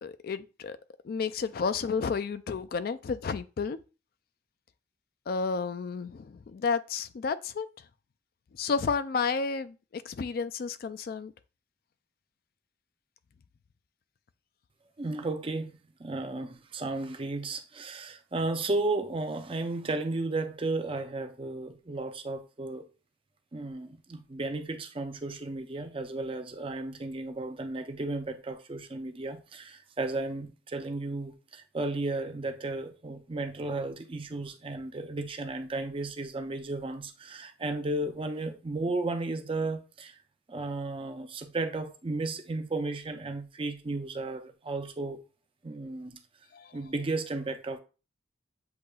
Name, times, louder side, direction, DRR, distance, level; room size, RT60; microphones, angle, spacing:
voice 1, 0.0-0.8 1.0-3.8 5.3-7.7 8.6-11.3 46.5-46.7, left 5 dB, 50° left, 0.3 m, -31 dB
voice 2, 15.0-22.9 23.5-40.2 40.5-45.2 45.6-46.2 46.7-47.8, right 2 dB, 30° right, 0.5 m, -34 dB
7.9 x 2.9 x 2.3 m
head